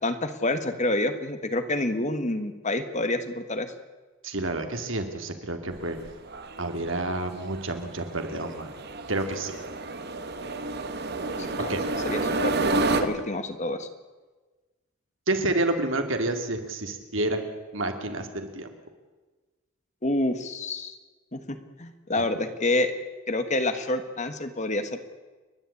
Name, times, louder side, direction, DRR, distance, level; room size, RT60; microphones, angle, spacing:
voice 1, 0.0-3.7 11.4-11.7 12.0-12.6 13.0-13.9 20.0-21.0 21.3-22.9 23.3-25.0, left 2 dB, 35° left, 9 dB, 1.4 m, -28 dB
voice 2, 4.2-6.0 6.6-8.7 9.1-9.6 11.7-11.8 12.8-13.1 15.3-17.4 17.7-18.7, right 2 dB, 65° right, 6 dB, 2.5 m, -29 dB
sound 1, 5.7-13.0, right 2 dB, 50° right, 1.4 m, -30 dB
29.5 x 11.5 x 8.5 m, 1.3 s
head